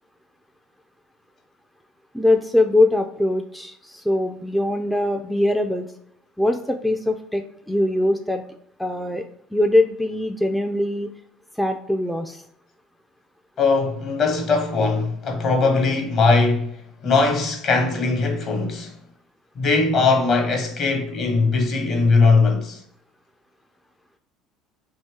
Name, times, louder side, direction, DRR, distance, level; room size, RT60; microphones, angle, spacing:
voice 1, 2.1-5.9 6.4-8.4 8.8-9.3 9.5-11.1 11.6-12.4, left 1 dB, 5° left, 0.3 m, -22 dB
voice 2, 13.6-16.7 17.0-18.9 19.5-22.8, left 4 dB, 50° left, 1.0 m, -20 dB
2.8 x 2.8 x 3.4 m
hypercardioid pair, 75°, 0 cm